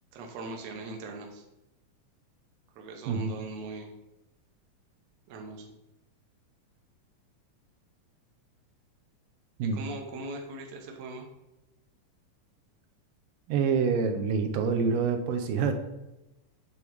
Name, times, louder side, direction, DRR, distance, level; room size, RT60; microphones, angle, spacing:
voice 1, 0.1-1.4 2.7-3.9 5.3-5.7 9.7-11.3, right 2 dB, 65° right, 1 dB, 1.8 m, -40 dB
voice 2, 13.5-15.7, right 5 dB, 85° right, 6 dB, 2.4 m, -26 dB
9.1 x 3.5 x 4.6 m, 0.95 s
omnidirectional pair, 3.8 m